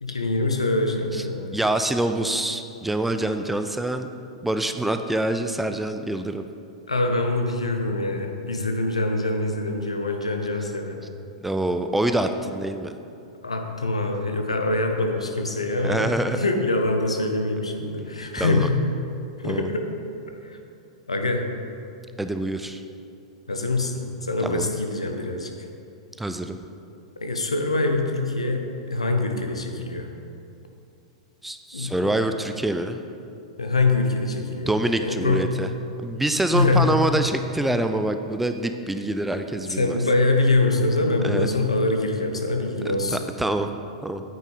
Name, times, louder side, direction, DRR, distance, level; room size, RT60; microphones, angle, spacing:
voice 1, 0.0-1.5 6.9-11.0 13.4-18.8 19.4-19.8 20.4-20.6 21.1-21.4 23.5-25.5 27.2-28.6 28.9-30.1 31.7-31.9 33.6-34.7 35.0-35.4 36.5-37.0 39.7-43.2, left 2 dB, 80° left, 4 dB, 0.8 m, -24 dB
voice 2, 1.5-4.1 4.4-6.4 11.4-12.9 15.8-16.4 18.4-18.7 19.4-19.7 22.2-22.8 24.4-24.7 26.2-26.6 31.4-33.0 34.7-35.7 36.0-40.0 41.2-41.5 43.1-43.7 44.0-44.2, right 1 dB, 5° right, 8 dB, 0.3 m, -25 dB
8.8 x 6.2 x 4.0 m, 2.6 s
figure-of-eight pair, 100°, 3 cm